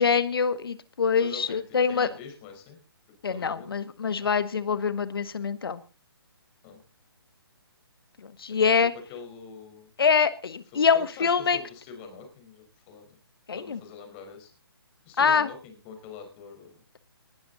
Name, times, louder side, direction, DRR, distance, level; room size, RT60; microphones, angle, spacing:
voice 1, 0.0-2.1 3.2-5.8 8.2-8.9 10.0-11.6 13.5-13.8 15.2-15.5, left 6 dB, 65° left, 14 dB, 1.3 m, -24 dB
voice 2, 1.1-2.8 3.3-3.7 4.2-4.3 6.6-6.8 8.5-9.9 10.7-13.1 13.6-14.5 15.0-16.8, left 6 dB, 25° left, 4 dB, 4.7 m, -44 dB
19.5 x 12.5 x 4.1 m, 0.35 s
hypercardioid pair, 150°, 13 cm